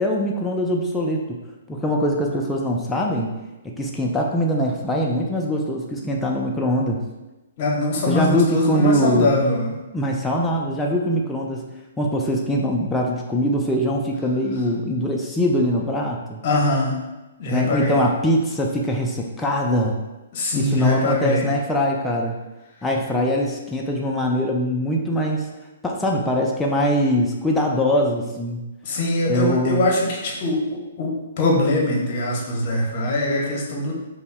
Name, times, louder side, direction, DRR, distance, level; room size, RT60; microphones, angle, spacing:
voice 1, 0.0-1.4 1.7-3.3 3.6-7.0 8.1-9.3 9.9-11.6 12.0-16.4 17.5-20.0 20.5-22.4 22.8-25.5 25.8-28.6 29.3-29.8, equal, 5° left, -1 dB, 0.3 m, -22 dB
voice 2, 7.6-9.7 16.4-17.0 17.4-18.0 20.3-21.5 28.8-33.9, left 2 dB, 40° left, -2 dB, 0.8 m, -22 dB
5.2 x 2.0 x 2.2 m, 1.1 s
figure-of-eight pair, 120°, 0 cm